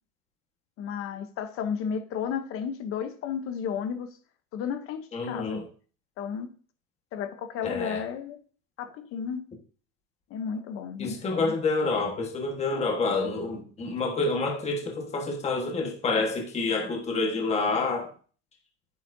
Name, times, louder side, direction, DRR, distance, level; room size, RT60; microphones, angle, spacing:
voice 1, 0.8-4.1 4.5-5.6 6.2-6.5 7.1-8.4 8.8-9.4 10.3-11.5, left 7 dB, 30° left, 0.9 m, -33 dB
voice 2, 5.1-5.7 7.6-8.0 11.0-18.1, left 3 dB, 15° left, 1.4 m, -28 dB
9.2 x 8.4 x 2.7 m
supercardioid pair, 160°, 43 cm